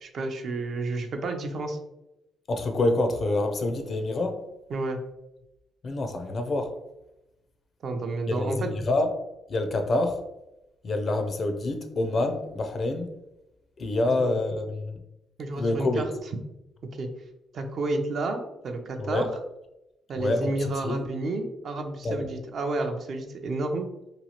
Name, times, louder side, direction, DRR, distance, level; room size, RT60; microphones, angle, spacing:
voice 1, 0.0-1.8 4.7-5.0 7.8-8.8 14.2-14.3 15.4-16.0 16.9-17.1 17.5-19.3 20.1-23.9, right 2 dB, 60° right, 5 dB, 0.4 m, -30 dB
voice 2, 2.5-4.4 5.8-6.7 8.3-9.1 9.5-10.2 10.8-13.1 13.8-15.0 15.6-16.1 19.0-19.3 20.1-21.0 22.0-22.2, left 2 dB, 45° left, 6 dB, 0.4 m, -27 dB
2.9 x 2.4 x 2.8 m, 0.91 s
cardioid pair, 90°, 0 cm